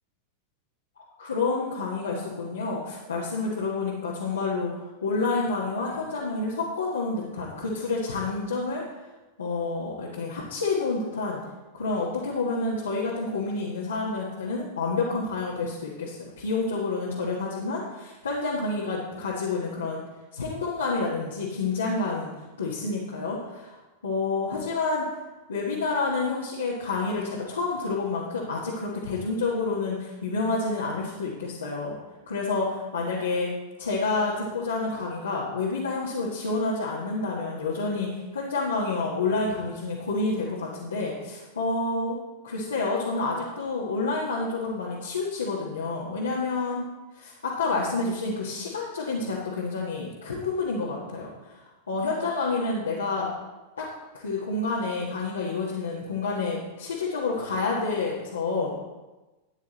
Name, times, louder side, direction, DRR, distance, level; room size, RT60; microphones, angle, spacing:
voice 1, 1.0-4.7 5.0-8.8 9.4-11.4 11.7-20.0 20.3-22.3 22.6-23.8 24.0-25.1 25.5-31.9 32.3-33.5 33.8-38.1 38.3-42.2 42.4-46.8 47.1-53.3 53.8-53.9 54.1-58.8, left 3 dB, 70° left, -6 dB, 1.6 m, -29 dB
13.5 x 9.2 x 3.1 m, 1.1 s
figure-of-eight pair, 90°, 0 cm